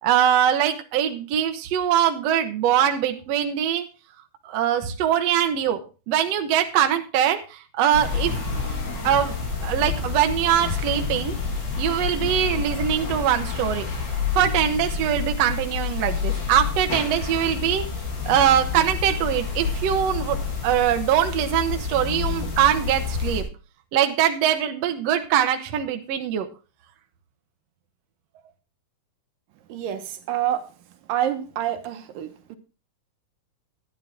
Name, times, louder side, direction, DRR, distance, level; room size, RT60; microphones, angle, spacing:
voice 1, 0.0-3.9 4.5-5.8 6.1-8.3 9.0-11.4 11.8-13.9 14.3-17.9 18.3-23.4 23.9-26.5, right 10 dB, 60° right, 6 dB, 1.9 m, -22 dB
sound 1, 7.9-23.4, left 5 dB, 65° left, 4.6 m, -29 dB
voice 2, 29.7-30.6 31.1-32.6, right 11 dB, 80° right, 8 dB, 2.7 m, -27 dB
13.0 x 10.0 x 3.6 m, 0.33 s
omnidirectional pair, 4.0 m